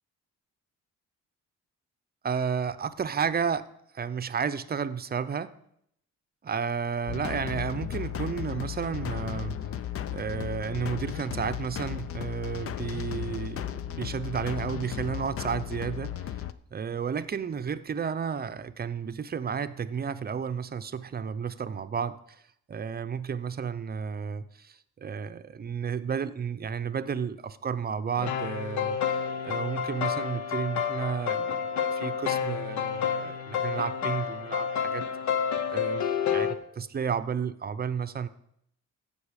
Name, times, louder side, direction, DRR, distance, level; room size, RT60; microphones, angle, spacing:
voice 1, 2.2-3.6 3.9-5.5 6.4-9.6 10.1-16.4 16.7-22.2 22.7-24.8 25.0-29.2 29.4-35.1 35.7-38.3, right 6 dB, 30° right, 13 dB, 0.6 m, -32 dB
sound 1, 7.1-16.5, left 11 dB, 50° left, 0.6 m, -35 dB
sound 2, 28.2-36.6, left 7 dB, 70° left, 0.9 m, -29 dB
15.5 x 5.5 x 5.1 m, 0.73 s
cardioid pair, 90°, 30 cm